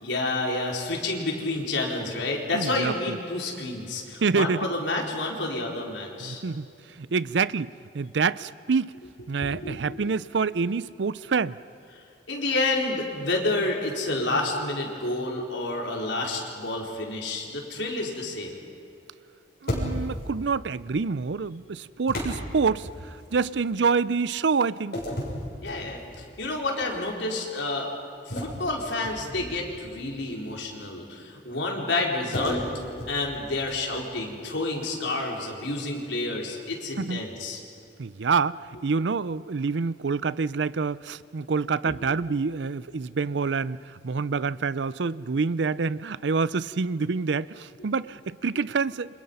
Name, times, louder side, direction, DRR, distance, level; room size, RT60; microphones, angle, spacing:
voice 1, 0.0-6.4 9.4-9.8 12.3-18.6 25.6-27.9 28.3-32.6 33.1-37.6 41.9-42.1, left 2 dB, 75° left, 0 dB, 4.4 m, -29 dB
voice 2, 2.5-3.2 4.2-4.6 6.2-6.7 7.0-8.9 9.3-11.6 19.6-25.0 37.0-37.2 38.0-49.1, right 5 dB, 70° right, 18 dB, 0.5 m, -27 dB
sound 1, 19.7-20.3 22.1-23.4 24.9-26.3 26.7-27.0 28.3-29.8 32.3-34.0, equal, 60° left, 6.7 m, -33 dB
29.5 x 26.5 x 5.6 m, 2.7 s
head